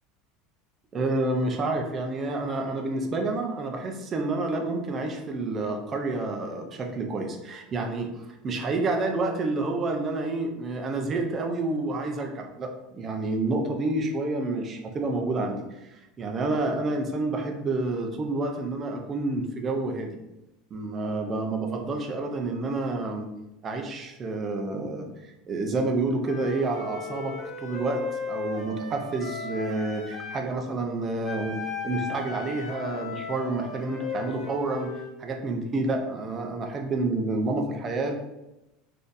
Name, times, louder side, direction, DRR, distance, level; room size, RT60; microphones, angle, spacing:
voice 1, 0.9-8.1 8.4-20.1 20.7-23.3 23.6-31.6 31.8-34.9 35.2-38.1, right 2 dB, 30° right, 3 dB, 0.5 m, -29 dB
Wind instrument woodwind instrument, 26.2-30.4 31.2-35.1, left 5 dB, 10° left, 1.4 m, -36 dB
3.7 x 2.6 x 2.5 m, 0.94 s
supercardioid pair, 135°, 0 cm